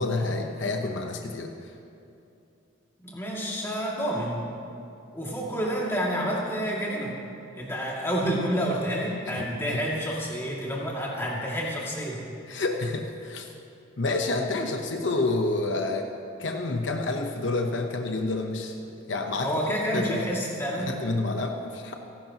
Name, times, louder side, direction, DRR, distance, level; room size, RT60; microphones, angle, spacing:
voice 1, 0.0-1.7 9.4-9.8 12.5-13.5 14.0-16.1 16.4-18.8 19.1-19.5 19.9-20.2 20.8-21.9, left 2 dB, 65° left, 3 dB, 0.9 m, -28 dB
voice 2, 3.0-4.5 5.1-7.1 7.5-12.2 19.4-20.9, equal, 10° left, -4 dB, 2.3 m, -29 dB
29.0 x 11.5 x 3.0 m, 2.7 s
head